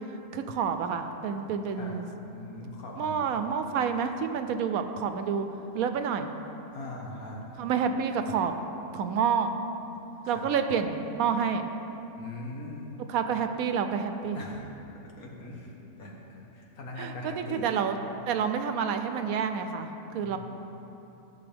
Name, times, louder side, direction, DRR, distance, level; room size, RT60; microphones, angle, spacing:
voice 1, 0.3-2.1 3.0-5.5 5.7-6.3 7.6-8.5 8.9-9.5 10.3-11.7 13.1-14.4 17.0-18.0 18.3-20.4, right 6 dB, 80° right, 8 dB, 1.0 m, -28 dB
voice 2, 2.3-3.4 6.7-7.4 10.2-10.5 12.2-12.9 14.3-14.6 15.0-17.8 20.2-20.4, left 2 dB, 80° left, -2 dB, 1.7 m, -41 dB
14.0 x 6.4 x 3.4 m, 3.0 s
omnidirectional pair, 1.5 m